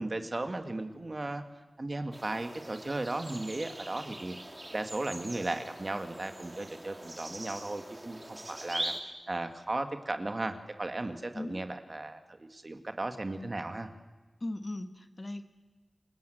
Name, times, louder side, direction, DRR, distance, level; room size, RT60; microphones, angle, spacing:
voice 1, 0.0-1.4 1.8-4.4 4.7-13.9, right 2 dB, 40° right, 7 dB, 1.9 m, -36 dB
sound 1, 2.1-9.0, right 1 dB, 25° right, 3.0 m, -42 dB
voice 2, 14.4-15.4, left 2 dB, 35° left, 9 dB, 1.5 m, -38 dB
28.0 x 20.5 x 7.9 m, 1.2 s
wide cardioid pair, 75°, 0 cm